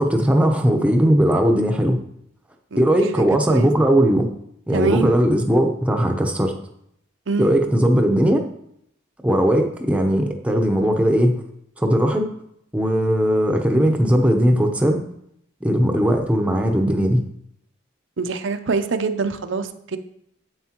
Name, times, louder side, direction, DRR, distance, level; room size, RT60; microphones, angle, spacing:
voice 1, 0.0-2.0 2.8-4.3 4.7-6.5 7.4-8.4 9.2-11.4 11.8-12.3 12.7-15.0 15.6-17.2, equal, 5° right, 3 dB, 0.8 m, -18 dB
voice 2, 2.7-3.7 4.7-5.1 7.3-7.5 18.2-20.0, right 4 dB, 70° right, 8 dB, 0.6 m, -25 dB
9.6 x 8.3 x 3.0 m, 0.73 s
head